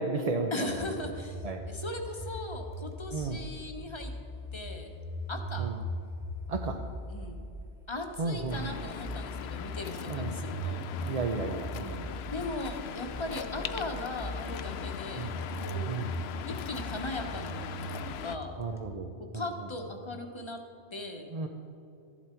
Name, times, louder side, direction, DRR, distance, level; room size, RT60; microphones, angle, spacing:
voice 1, 0.0-0.8 1.4-1.6 3.1-3.4 5.6-5.8 6.5-6.8 8.2-8.7 10.1-10.4 11.0-12.1 15.1-15.4 15.9-16.2 18.6-19.4 21.3-21.5, right 3 dB, 40° right, 3 dB, 0.6 m, -33 dB
voice 2, 0.5-4.1 4.5-4.9 5.3-5.7 7.1-7.4 7.9-10.8 12.3-15.3 15.6-16.0 16.5-18.5 19.3-20.6 20.9-21.2, left 2 dB, 25° left, 4 dB, 1.1 m, -38 dB
sound 1, 0.7-18.9, equal, ahead, 1.1 m, -40 dB
Waves surf, 8.5-18.4, left 9 dB, 70° left, 0.8 m, -40 dB
14.0 x 11.5 x 4.5 m, 2.7 s
omnidirectional pair, 1.2 m